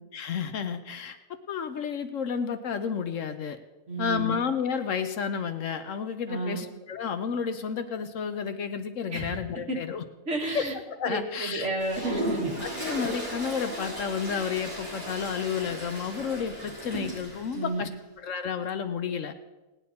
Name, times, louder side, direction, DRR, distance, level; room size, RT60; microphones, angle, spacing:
voice 1, 0.1-3.6 4.0-10.0 10.5-11.7 12.6-17.9 18.2-19.3, left 6 dB, 70° left, 9 dB, 1.1 m, -31 dB
voice 2, 3.9-4.4 6.3-6.6 9.1-9.4 9.7-9.8 10.3-10.7 11.1-12.5 17.5-17.8, right 2 dB, 55° right, -1 dB, 2.4 m, -31 dB
Toilet flush, 11.8-17.6, right 1 dB, 35° right, 5.3 m, -35 dB
18.5 x 10.0 x 4.3 m, 1.1 s
omnidirectional pair, 1.4 m